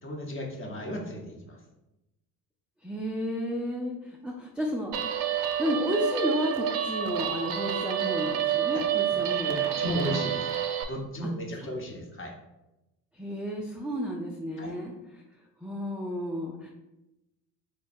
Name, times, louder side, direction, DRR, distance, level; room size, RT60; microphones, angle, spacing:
voice 1, 0.0-1.6 8.7-8.8 9.1-9.2 9.5-10.4 10.8-12.3 14.6-14.7, equal, 30° left, 1 dB, 1.0 m, -34 dB
voice 2, 2.8-5.1 5.6-9.6 13.2-14.9 15.6-16.7, equal, ahead, -2 dB, 0.3 m, -32 dB
Guitar, 4.9-10.8, right 9 dB, 70° right, 0.6 m, -29 dB
3.1 x 2.2 x 4.3 m, 0.95 s
hypercardioid pair, 65°, 44 cm